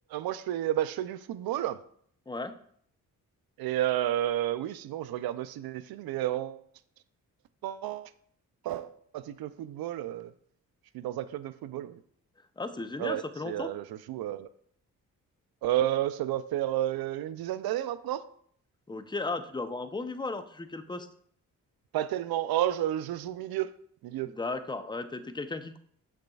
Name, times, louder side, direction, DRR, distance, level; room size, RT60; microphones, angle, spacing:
voice 1, 0.1-1.8 3.6-6.6 7.6-8.1 8.6-10.3 10.9-12.0 13.0-14.5 15.6-18.3 21.9-23.7 24.0-24.3, right 12 dB, 70° right, 14 dB, 0.6 m, -31 dB
voice 2, 12.6-13.7 18.9-21.1 24.3-25.8, left 3 dB, 10° left, 9 dB, 0.7 m, -35 dB
8.3 x 6.6 x 2.4 m, 0.62 s
supercardioid pair, 50°, 38 cm